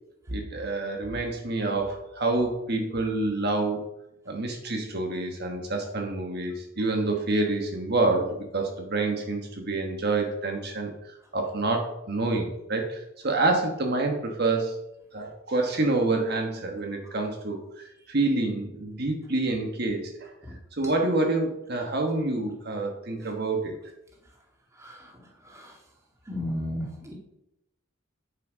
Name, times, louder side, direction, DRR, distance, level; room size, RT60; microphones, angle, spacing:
voice 1, 0.3-3.9 4.3-14.8 15.1-20.3 20.7-23.8, right 2 dB, 55° right, 2 dB, 1.4 m, -27 dB
voice 2, 26.3-27.1, left 1 dB, 15° right, -1 dB, 2.2 m, -32 dB
8.9 x 7.4 x 5.1 m, 0.86 s
head